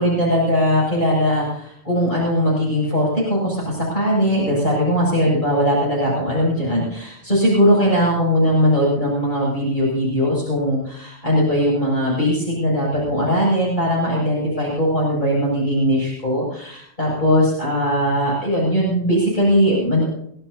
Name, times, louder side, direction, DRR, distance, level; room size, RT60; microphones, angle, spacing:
voice 1, 0.0-20.0, equal, 45° left, -6 dB, 8.4 m, -19 dB
24.5 x 17.0 x 2.9 m, 0.66 s
omnidirectional pair, 1.2 m